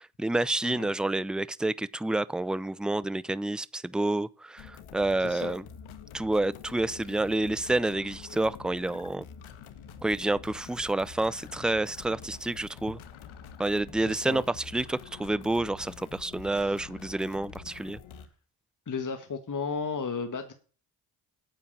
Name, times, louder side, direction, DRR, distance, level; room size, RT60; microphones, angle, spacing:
voice 1, 0.0-5.6 6.1-9.2 10.0-13.0 13.6-18.0, right 2 dB, ahead, 0.6 m, -29 dB
sound 1, 4.6-18.3, left 7 dB, 75° left, 1.7 m, -47 dB
voice 2, 5.2-5.5 14.0-14.5 16.4-16.8 18.9-20.5, left 5 dB, 40° left, 1.8 m, -34 dB
9.2 x 8.3 x 8.7 m
supercardioid pair, 50°, 49 cm